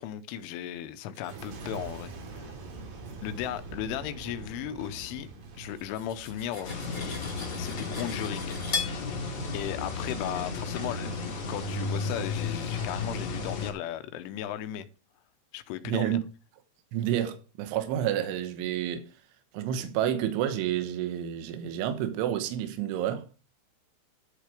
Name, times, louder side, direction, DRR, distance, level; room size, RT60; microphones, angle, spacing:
voice 1, 0.0-2.5 3.2-5.3 5.6-7.2 7.6-8.6 9.5-11.1 11.5-14.9 15.5-16.2, left 11 dB, 85° left, 3.3 m, -36 dB
Boom, 1.2-10.5 11.0-11.5, right 3 dB, 55° right, 3.2 m, -45 dB
Cutlery silverware, 5.8-9.0, left 4 dB, 15° left, 2.3 m, -37 dB
sound 1, 6.6-13.7, left 3 dB, 40° left, 2.7 m, -33 dB
voice 2, 15.8-16.2 16.9-19.1 19.5-23.3, right 11 dB, 80° right, 3.7 m, -29 dB
12.0 x 6.7 x 5.0 m
omnidirectional pair, 5.6 m